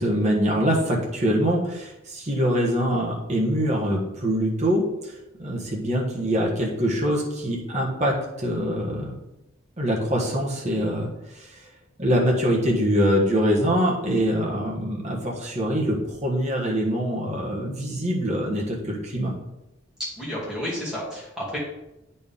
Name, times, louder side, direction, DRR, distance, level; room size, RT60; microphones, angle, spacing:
voice 1, 0.0-9.1 9.8-11.6 12.0-19.3, equal, 35° right, -2 dB, 1.3 m, -24 dB
voice 2, 20.2-21.6, equal, 5° right, -7 dB, 2.3 m, -31 dB
8.5 x 4.4 x 3.6 m, 0.91 s
head